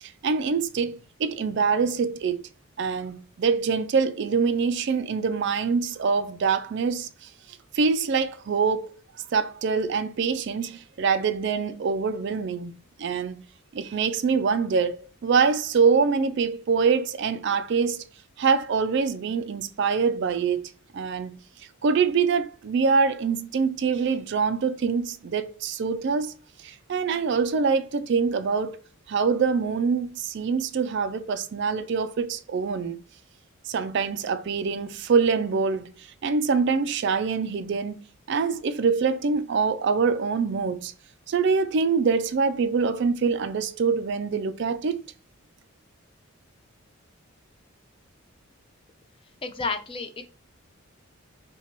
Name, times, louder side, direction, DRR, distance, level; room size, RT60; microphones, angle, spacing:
voice 1, 0.0-2.4 2.8-7.3 7.7-9.0 9.3-12.7 13.0-13.4 13.7-18.0 18.4-21.4 21.8-26.3 26.6-28.8 29.1-33.0 33.7-35.9 36.2-38.0 38.3-40.9 41.3-45.0, right 5 dB, 50° right, 0.3 m, -24 dB
voice 2, 49.4-50.2, left 4 dB, 25° left, 0.5 m, -31 dB
5.7 x 2.3 x 2.9 m
head